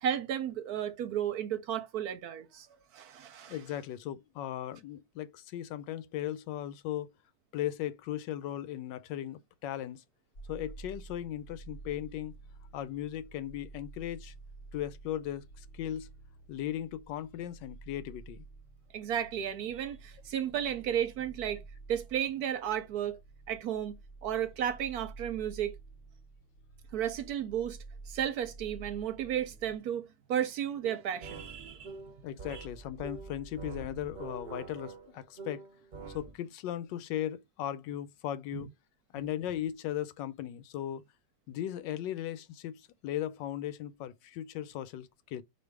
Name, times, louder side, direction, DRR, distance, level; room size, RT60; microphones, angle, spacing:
voice 1, 0.0-2.7 2.9-3.6 18.9-21.6 21.9-23.2 23.5-23.9 24.2-25.8 26.9-27.8 28.1-31.9 32.5-32.7 38.5-38.7, right 9 dB, 70° right, 1.0 m, -33 dB
voice 2, 3.5-7.1 7.5-10.0 10.5-12.3 12.7-14.3 14.7-16.1 16.5-18.4 32.2-35.6 36.1-38.7 39.1-41.0 41.5-45.4, left 11 dB, 85° left, 1.3 m, -37 dB
sound 1, 10.3-29.8, right 3 dB, 65° left, 0.6 m, -50 dB
sound 2, 30.8-36.3, right 4 dB, 85° right, 0.4 m, -45 dB
4.4 x 2.6 x 4.6 m
omnidirectional pair, 1.9 m